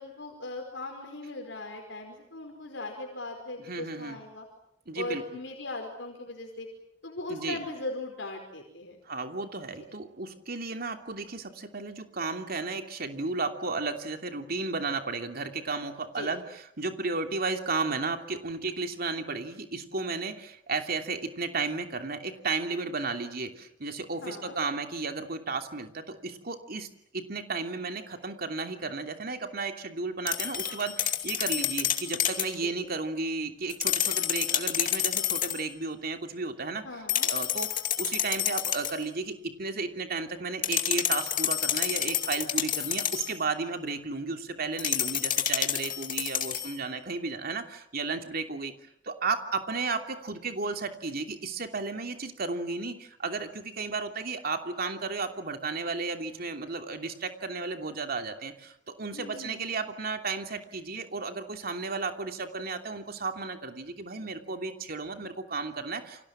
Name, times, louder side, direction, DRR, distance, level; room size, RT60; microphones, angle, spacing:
voice 1, 0.0-4.4 4.9-6.7 7.0-9.0 16.1-16.3 24.2-24.6 32.6-32.7 36.8-37.3 59.1-59.8, left 2 dB, 70° left, 2 dB, 5.1 m, -39 dB
voice 2, 3.6-4.2 4.9-5.2 7.3-7.6 9.0-26.9 27.1-36.8 37.3-48.7 49.0-66.3, right 4 dB, 55° right, 6 dB, 2.9 m, -33 dB
sound 1, 30.3-32.6 33.7-35.6 37.1-39.0 40.6-43.4 44.8-46.8, left 10 dB, 45° left, 2.6 m, -29 dB
29.5 x 25.0 x 7.5 m, 0.72 s
head